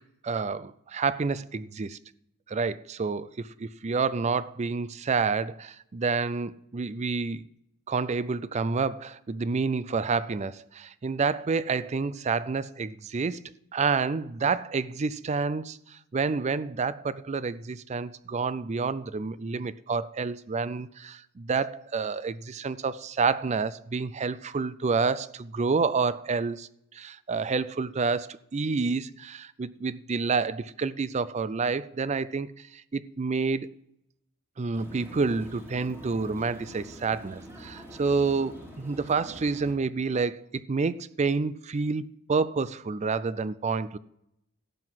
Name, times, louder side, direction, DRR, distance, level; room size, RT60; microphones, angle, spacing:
voice 1, 0.2-2.0 2.5-7.4 7.9-13.4 13.7-33.7 34.6-44.0, right 4 dB, 30° right, 0.4 m, -29 dB
sound 1, 34.7-39.7, equal, 10° right, 2.4 m, -45 dB
12.0 x 7.8 x 5.9 m
head